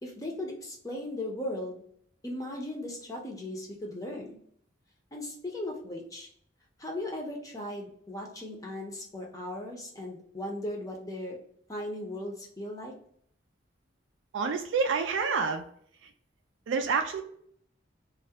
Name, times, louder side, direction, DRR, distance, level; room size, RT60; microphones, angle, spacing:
voice 1, 0.0-1.8 2.2-4.4 5.1-6.3 6.8-11.4 11.7-12.9, left 1 dB, 20° left, 0 dB, 0.5 m, -37 dB
voice 2, 14.3-15.7 16.0-16.1 16.7-17.2, right 5 dB, 80° right, 5 dB, 0.3 m, -28 dB
2.3 x 2.0 x 2.7 m, 0.63 s
head